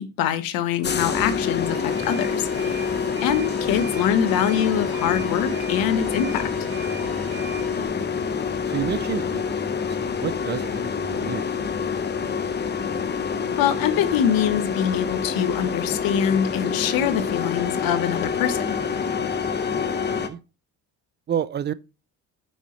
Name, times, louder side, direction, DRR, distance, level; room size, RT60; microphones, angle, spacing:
voice 1, 0.0-2.9 3.2-6.4 13.6-18.8, left 9 dB, 75° left, 1.1 m, -24 dB
sound 1, 0.8-20.3, left 6 dB, 30° left, 1.0 m, -27 dB
Alarm, 1.6-7.9, right 6 dB, 75° right, 3.1 m, -40 dB
voice 2, 7.6-8.1 8.7-9.4 9.9-11.7 19.7-20.4 21.3-21.7, right 9 dB, 30° right, 0.5 m, -31 dB
8.2 x 6.3 x 3.1 m
cardioid pair, 110°, 35 cm